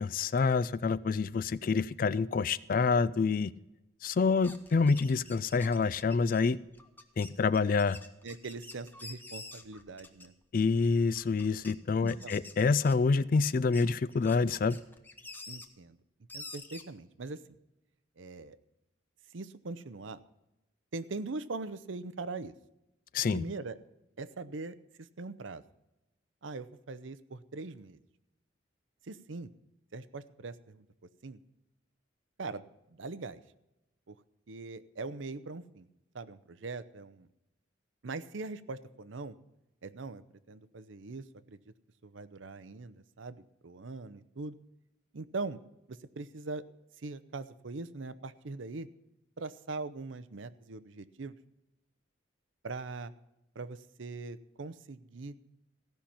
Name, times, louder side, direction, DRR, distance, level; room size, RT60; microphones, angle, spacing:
voice 1, 0.0-3.5 4.0-6.6 7.2-8.0 10.5-14.8 23.1-23.4, left 4 dB, 45° left, 18 dB, 0.3 m, -27 dB
sound 1, 4.2-10.4 10.8-11.7 12.1-13.2 13.6-15.6 16.3-16.8, left 2 dB, 10° left, 0.9 m, -48 dB
voice 2, 8.2-10.3 12.0-12.4 15.5-16.0 16.3-17.4 18.2-18.6 19.3-20.2 20.9-22.5 23.3-23.8 24.2-24.8 25.2-25.6 26.4-28.0 29.1-29.5 29.9-30.8 31.2-31.4 32.4-33.4 34.1-34.2 34.5-35.9 36.1-37.3 38.0-39.4 39.8-41.6 42.0-44.6 45.1-45.6 45.9-46.6 47.0-48.9 49.4-51.4 52.6-53.1 53.6-55.3, right 3 dB, 80° right, 15 dB, 0.7 m, -41 dB
15.5 x 5.8 x 8.5 m, 0.92 s
head